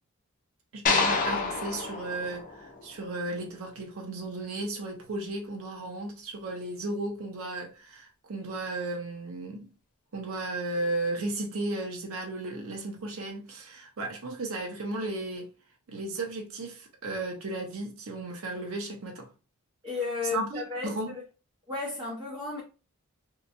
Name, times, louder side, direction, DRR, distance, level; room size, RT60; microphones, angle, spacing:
voice 1, 0.7-9.7 10.1-15.5 15.9-19.3 20.3-21.1, right 2 dB, 75° right, 0.6 m, -34 dB
sound 1, 0.9-3.2, left 4 dB, 40° left, 0.5 m, -29 dB
voice 2, 19.8-21.2 21.7-22.6, left 4 dB, 25° right, 0.9 m, -33 dB
3.0 x 2.3 x 2.5 m
head